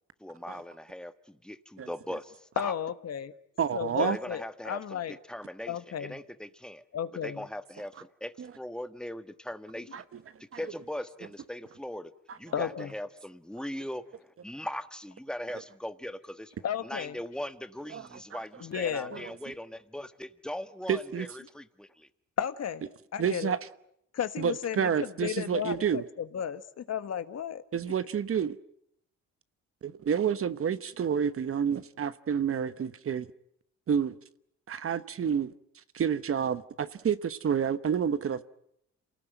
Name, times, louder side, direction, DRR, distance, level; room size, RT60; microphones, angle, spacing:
voice 1, 0.2-2.7 4.0-6.8 7.2-10.0 10.4-12.1 12.4-16.5 16.8-19.7 19.9-22.1, left 1 dB, 5° left, 1.4 m, -40 dB
voice 2, 2.5-3.3 3.7-5.2 5.7-6.2 6.9-7.5 12.5-12.9 16.6-17.2 18.6-19.3 22.4-22.9 23.1-23.5 24.1-27.6, left 9 dB, 55° left, 1.5 m, -33 dB
voice 3, 3.6-4.2 8.4-8.5 9.9-10.0 12.3-12.4 17.9-18.4 19.1-19.2 20.9-21.3 23.2-23.6 24.4-26.0 27.7-28.6 29.8-33.3 33.9-34.2 34.7-35.5 35.9-38.4, right 7 dB, 45° right, 1.1 m, -29 dB
28.0 x 19.0 x 9.2 m
cardioid pair, 90°, 30 cm